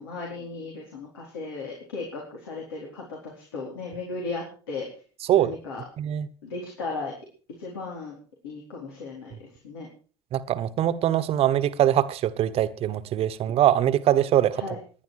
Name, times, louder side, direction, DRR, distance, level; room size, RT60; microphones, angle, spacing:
voice 1, 0.0-4.9 5.4-5.8 6.4-7.1 7.6-8.2 8.4-9.9 14.6-14.8, left 3 dB, 85° left, 4.3 m, -36 dB
voice 2, 10.3-14.6, right 11 dB, 55° right, 1.3 m, -22 dB
19.0 x 10.5 x 4.8 m
hypercardioid pair, 75°, 12 cm